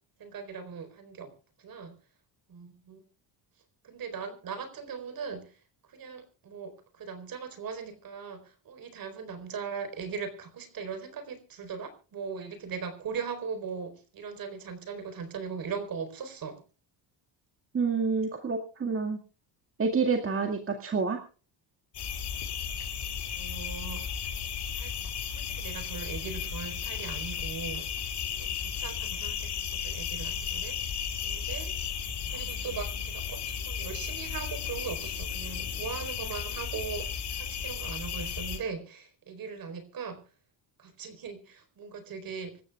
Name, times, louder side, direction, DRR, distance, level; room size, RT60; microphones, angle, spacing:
voice 1, 0.2-1.3 1.6-1.9 2.5-3.0 3.8-5.6 5.9-16.6 23.2-24.1 24.7-24.9 25.3-27.9 28.4-30.8 31.2-31.7 32.3-40.2 40.8-42.6, right 6 dB, 50° right, 9 dB, 4.4 m, -39 dB
voice 2, 17.7-19.2 19.8-21.2, right 5 dB, 30° right, 3 dB, 2.0 m, -28 dB
sound 1, 21.9-38.6, left 7 dB, 60° left, 5.5 m, -34 dB
26.0 x 14.5 x 2.4 m, 0.37 s
cardioid pair, 140°, 44 cm